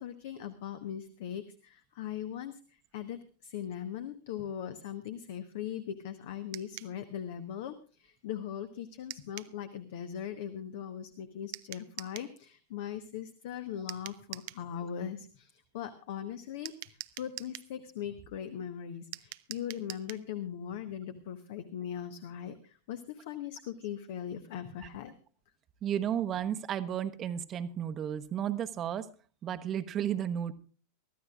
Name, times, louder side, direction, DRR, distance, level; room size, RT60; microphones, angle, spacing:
voice 1, 0.0-2.6 2.9-25.1, left 9 dB, 50° left, 10 dB, 1.1 m, -40 dB
sound 1, 6.5-6.9 9.1-9.5 11.5-12.3 13.9-14.6 16.6-17.7 19.1-20.3, right 19 dB, 50° right, 0.6 m, -44 dB
voice 2, 25.8-29.1 29.4-30.5, right 9 dB, 30° right, 10 dB, 1.1 m, -33 dB
24.0 x 14.0 x 2.4 m, 0.38 s
figure-of-eight pair, 90°, 0 cm